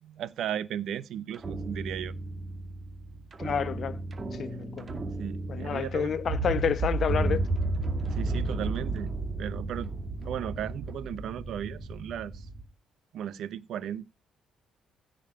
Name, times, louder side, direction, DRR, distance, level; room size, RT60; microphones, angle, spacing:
voice 1, 0.0-2.1 5.2-6.1 8.1-9.1 9.4-9.9 10.2-12.5 13.1-14.1, right 10 dB, 60° right, 0.9 m, -35 dB
sound 1, 1.3-12.6, right 2 dB, 40° right, 2.2 m, -33 dB
voice 2, 3.4-4.0 4.4-4.9 5.5-7.5, left 7 dB, 50° left, 1.2 m, -29 dB
15.5 x 5.5 x 5.6 m
hypercardioid pair, 45°, 0 cm